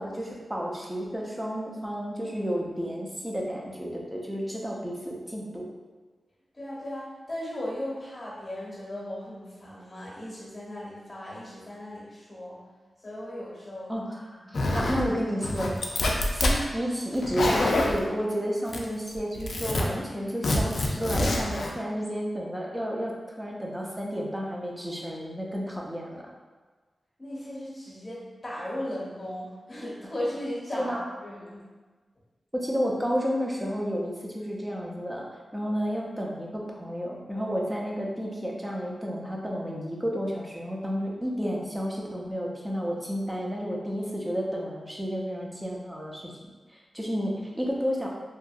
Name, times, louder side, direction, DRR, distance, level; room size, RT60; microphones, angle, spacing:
voice 1, 0.0-5.7 13.9-15.8 16.3-26.2 30.7-31.0 32.5-35.3 35.5-46.3 46.7-48.1, equal, 10° right, -2 dB, 0.5 m, -31 dB
voice 2, 6.5-12.6 13.0-13.9 14.4-14.6 27.2-30.9 31.2-31.6, left 1 dB, 30° left, -6 dB, 0.9 m, -36 dB
Zipper (clothing), 14.5-15.1 15.4-16.6 17.1-18.0 18.7-19.1 19.4-19.8 20.4-21.7, left 1 dB, 65° left, 0.3 m, -26 dB
2.7 x 2.4 x 2.3 m, 1.3 s
wide cardioid pair, 85°, 0 cm